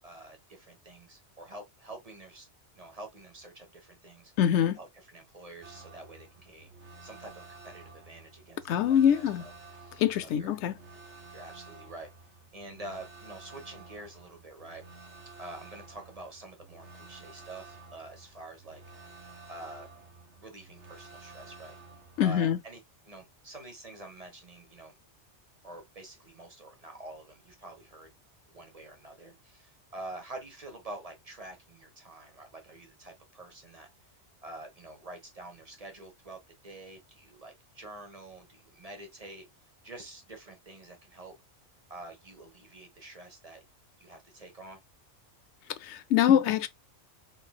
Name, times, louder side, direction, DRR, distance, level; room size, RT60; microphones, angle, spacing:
voice 1, 0.0-2.5 2.7-4.3 4.8-6.7 7.0-10.5 11.3-15.1 15.4-18.8 19.5-19.9 20.4-21.7 22.2-22.8 23.0-24.9 25.6-28.1 28.5-33.9 34.4-39.4 39.8-41.3 41.9-43.6 44.0-44.8, right 2 dB, 35° right, 1.1 m, -47 dB
voice 2, 4.4-4.8 8.6-9.4 10.0-10.7 22.2-22.6 45.8-46.7, left 9 dB, 75° left, 0.9 m, -24 dB
Sirene Alarm (Loop), 5.6-22.3, right 3 dB, 75° right, 1.6 m, -51 dB
4.0 x 3.7 x 2.2 m
omnidirectional pair, 1.2 m